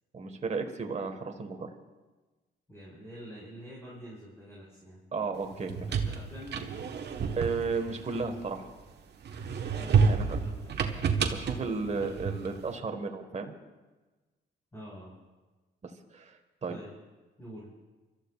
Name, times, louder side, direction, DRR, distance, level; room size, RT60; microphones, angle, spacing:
voice 1, 0.1-1.7 5.1-5.9 7.4-8.7 10.1-10.4 11.3-13.5 16.1-16.8, right 4 dB, 35° right, 4 dB, 1.6 m, -34 dB
voice 2, 2.7-5.0 5.9-6.7 9.8-11.2 11.5-11.9 14.7-15.2 16.7-16.9 17.4-17.7, equal, 15° left, -6 dB, 5.0 m, -47 dB
sound 1, 5.5-8.8 9.2-12.6, right 5 dB, 60° right, 1.3 m, -29 dB
29.5 x 13.5 x 2.5 m, 1.2 s
cardioid pair, 90°, 20 cm